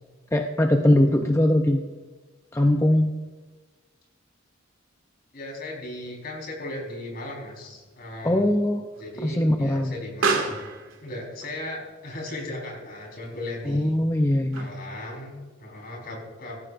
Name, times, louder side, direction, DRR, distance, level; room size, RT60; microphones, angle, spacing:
voice 1, 0.3-1.8 2.5-3.1 8.2-8.9 9.2-10.0 13.7-14.8, left 1 dB, 15° left, 3 dB, 0.6 m, -21 dB
voice 2, 5.3-8.5 9.0-10.7 11.0-14.0 14.5-16.6, left 1 dB, 50° left, -1 dB, 4.3 m, -37 dB
Explosion, 6.0-15.0, right 4 dB, 80° right, 2.1 m, -35 dB
16.5 x 14.5 x 2.5 m, 1.3 s
head